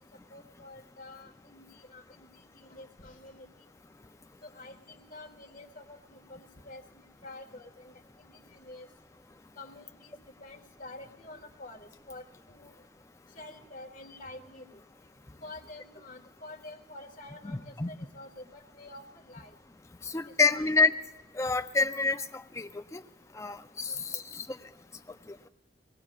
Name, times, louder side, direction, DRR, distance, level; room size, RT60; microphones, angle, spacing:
voice 1, 0.3-3.6 4.4-8.9 9.5-10.1 10.4-12.7 13.3-14.8 15.4-19.6 20.1-20.7 23.9-24.2, left 2 dB, 45° left, -1 dB, 1.6 m, -48 dB
voice 2, 17.4-17.9 20.0-20.9 21.3-23.0 23.4-24.4 25.3-25.5, left 4 dB, 15° left, 8 dB, 0.4 m, -28 dB
23.5 x 19.0 x 2.4 m, 1.0 s
head